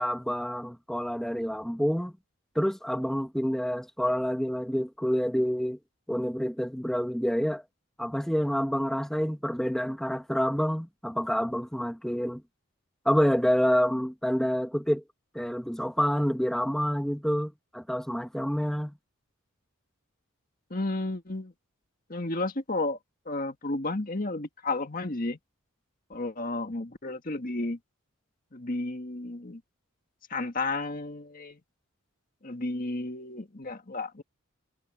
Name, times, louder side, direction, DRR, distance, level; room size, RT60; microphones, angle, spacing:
voice 1, 0.0-2.1 2.5-5.8 6.1-7.6 8.0-12.4 13.0-15.0 15.3-18.9, equal, ahead, 1.5 m, -28 dB
voice 2, 20.7-21.5 22.1-23.0 23.3-25.4 26.1-27.8 28.5-29.6 30.3-31.6 32.4-34.2, left 2 dB, 40° left, 1.9 m, -32 dB
head